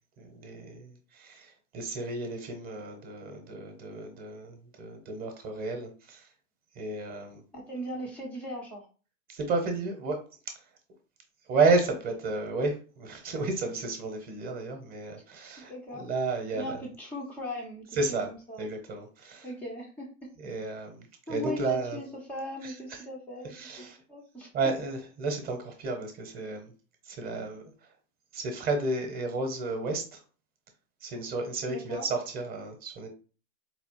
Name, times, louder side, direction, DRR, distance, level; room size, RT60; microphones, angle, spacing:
voice 1, 0.2-6.3 6.8-7.4 9.3-10.2 10.5-10.6 11.5-16.8 17.9-18.3 18.6-19.5 20.4-22.0 22.6-23.0 23.5-24.0 24.5-26.7 27.0-27.7 28.3-30.2 31.0-33.1, right 3 dB, 25° right, 0.7 m, -32 dB
voice 2, 7.5-8.9 15.7-16.1 16.5-18.7 19.4-20.1 21.3-24.5 31.7-32.1, equal, 5° left, 0.3 m, -39 dB
4.1 x 2.3 x 2.9 m
hypercardioid pair, 135°, 38 cm